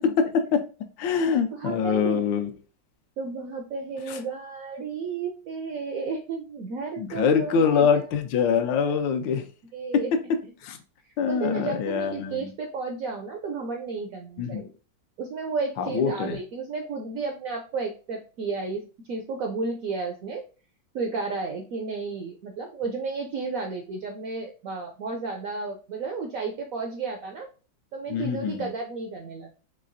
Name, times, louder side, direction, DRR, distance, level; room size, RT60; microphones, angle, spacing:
voice 1, 0.0-0.6 1.0-2.5 4.1-4.2 7.0-9.4 10.6-10.8 11.2-12.5 14.4-14.6 15.8-16.4 28.1-28.7, left 6 dB, 80° left, 7 dB, 1.3 m, -24 dB
voice 2, 1.3-2.5 3.2-8.1 9.7-10.1 11.2-14.7 15.2-20.4 20.9-27.5 27.9-29.5, right 4 dB, 75° right, 4 dB, 0.7 m, -33 dB
4.5 x 3.2 x 2.5 m, 0.35 s
omnidirectional pair, 2.0 m